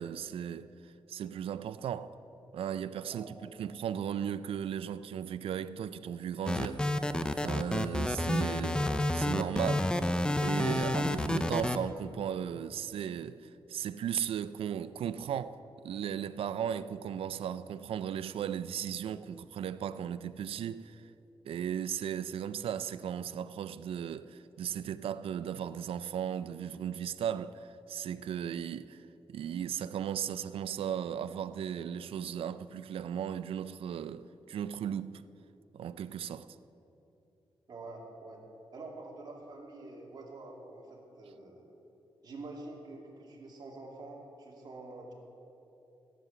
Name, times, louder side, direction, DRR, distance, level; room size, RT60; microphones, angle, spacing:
voice 1, 0.0-2.2 2.5-6.9 7.4-9.9 10.4-15.6 15.8-21.0 21.4-35.2 35.7-36.5, right 9 dB, 85° right, 0.4 m, -36 dB
sound 1, 6.5-11.8, left 1 dB, 10° left, 0.5 m, -29 dB
voice 2, 37.7-38.4 38.7-41.7 42.2-45.1, right 2 dB, 45° right, 2.6 m, -46 dB
16.0 x 7.6 x 8.0 m
wide cardioid pair, 170°, 9 cm